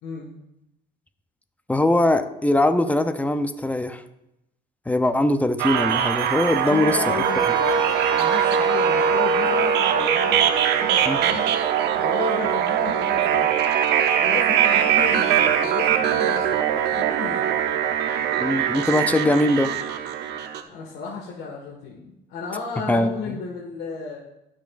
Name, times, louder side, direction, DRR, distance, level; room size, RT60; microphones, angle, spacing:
voice 1, 1.7-4.0 4.9-7.1 11.1-11.2 18.4-19.7 22.9-23.1, left 1 dB, 10° left, 10 dB, 0.6 m, -21 dB
sound 1, 5.6-20.6, right 9 dB, 80° right, 0.8 m, -22 dB
voice 2, 6.7-11.5 12.0-13.7 14.1-16.6 16.9-17.5 18.9-19.6 20.6-24.2, left 4 dB, 85° left, -2 dB, 1.7 m, -34 dB
Wind instrument woodwind instrument, 7.2-12.2, right 2 dB, 25° right, 0.9 m, -26 dB
18.5 x 6.3 x 2.5 m, 0.88 s
cardioid pair, 110°, 17 cm